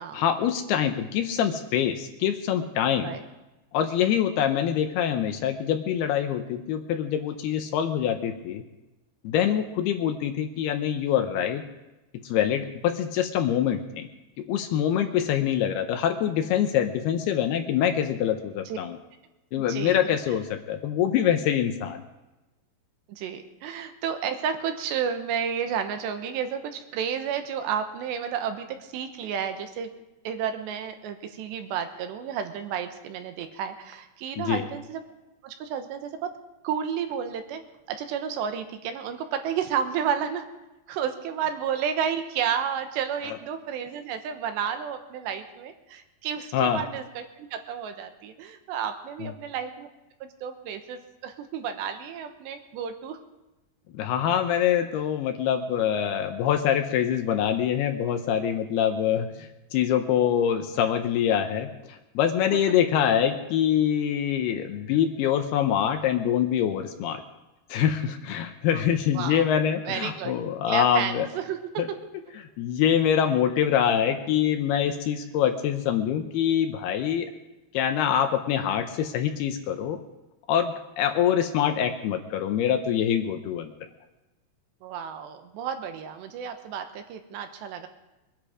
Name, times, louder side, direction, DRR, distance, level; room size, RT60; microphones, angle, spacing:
voice 1, 0.1-3.1 3.7-8.6 9.2-11.6 12.2-14.1 14.4-19.0 19.5-22.0 34.4-34.6 46.5-46.8 49.2-49.3 53.9-67.2 67.7-71.3 71.8-71.9 72.6-77.3 77.7-80.0 80.5-83.7, left 9 dB, 75° left, 7 dB, 2.5 m, -25 dB
voice 2, 19.5-20.1 23.1-29.9 30.2-35.0 35.4-36.1 36.6-37.6 37.9-40.5 40.9-49.9 50.2-53.2 62.5-62.6 69.1-69.5 69.8-70.4 70.7-71.6 84.8-87.9, right 8 dB, 80° right, 7 dB, 3.2 m, -31 dB
22.5 x 10.5 x 4.9 m, 1.0 s
omnidirectional pair, 5.1 m